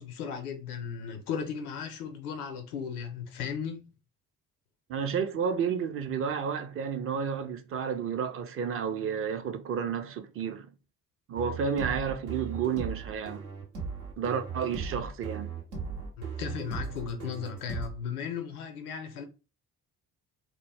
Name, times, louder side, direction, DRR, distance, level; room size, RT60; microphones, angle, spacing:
voice 1, 0.0-3.9 16.2-19.2, left 7 dB, 80° left, 0.5 m, -36 dB
voice 2, 4.9-10.7 11.3-13.4 14.2-15.5, right 7 dB, 30° right, 0.4 m, -31 dB
sound 1, 11.4-17.9, right 5 dB, 80° right, 0.8 m, -37 dB
2.0 x 2.0 x 3.2 m
figure-of-eight pair, 45°, 45 cm